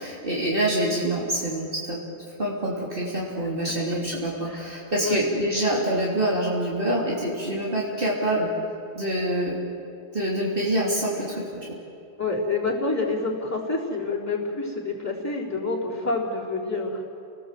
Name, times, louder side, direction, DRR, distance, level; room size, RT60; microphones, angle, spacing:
voice 1, 0.0-2.0 2.4-8.5 9.0-9.6 10.1-11.8, right 1 dB, 50° right, -5 dB, 3.5 m, -26 dB
voice 2, 12.2-17.0, left 3 dB, 15° left, -4 dB, 3.8 m, -27 dB
29.5 x 19.5 x 7.7 m, 2.5 s
omnidirectional pair, 1.1 m